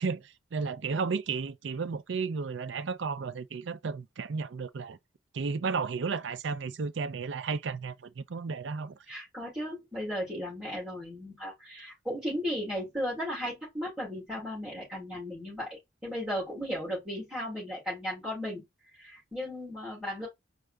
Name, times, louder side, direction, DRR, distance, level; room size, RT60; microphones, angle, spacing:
voice 1, 0.0-5.0 5.3-8.9, right 5 dB, 75° right, 0.5 m, -33 dB
voice 2, 9.1-18.6 19.0-20.3, equal, 5° right, 3.1 m, -35 dB
4.7 x 2.4 x 3.3 m
head